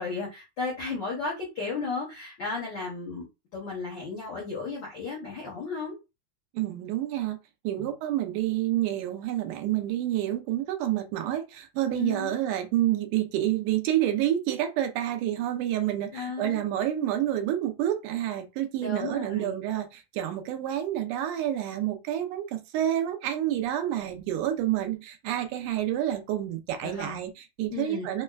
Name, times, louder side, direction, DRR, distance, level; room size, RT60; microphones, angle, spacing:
voice 1, 0.0-3.2 3.5-5.9 7.8-7.9 11.9-12.3 16.1-16.6 18.8-19.5 26.8-27.2 27.7-28.1, left 4 dB, 70° left, 1.0 m, -34 dB
voice 2, 6.5-7.4 7.6-28.2, right 12 dB, 85° right, 2.2 m, -28 dB
5.2 x 2.2 x 2.3 m
omnidirectional pair, 3.6 m